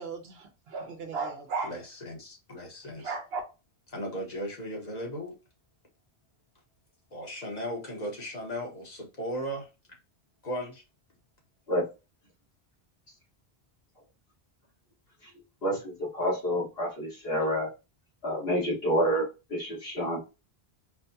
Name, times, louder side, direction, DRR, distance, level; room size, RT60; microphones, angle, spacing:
voice 1, 0.0-1.7 3.0-3.4, right 4 dB, 75° right, 1.0 m, -35 dB
voice 2, 1.6-3.1 3.9-5.3 7.1-9.7 10.4-10.8, equal, 40° left, 1.2 m, -36 dB
voice 3, 15.6-17.7 18.2-20.2, equal, 70° left, 1.9 m, -28 dB
4.5 x 2.2 x 2.7 m
omnidirectional pair, 1.1 m